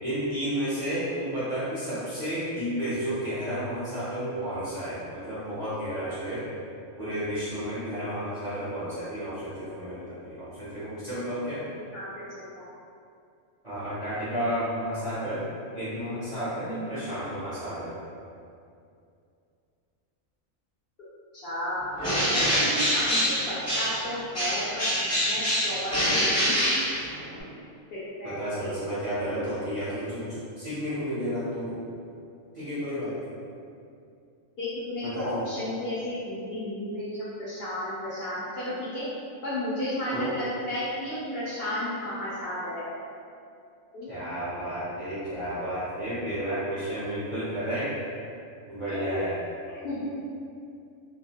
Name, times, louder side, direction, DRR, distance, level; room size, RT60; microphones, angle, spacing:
voice 1, 0.0-6.5 7.0-11.7 13.6-15.4 15.7-18.0 28.2-31.8 32.5-33.3 35.0-35.4 40.1-40.4 44.1-47.9 48.7-49.4, equal, 40° right, -13 dB, 0.6 m, -32 dB
voice 2, 11.9-12.5 21.4-21.9 22.3-23.2 23.5-24.8 25.2-26.6 27.9-28.7 34.6-39.0 39.4-42.9 43.9-44.1 48.9-49.2 49.8-50.1, left 1 dB, 60° left, -10 dB, 0.7 m, -33 dB
Bird, 22.0-24.1 24.3-27.4, equal, 15° left, 0.5 m, -25 dB
2.4 x 2.0 x 2.7 m, 2.5 s
omnidirectional pair, 1.4 m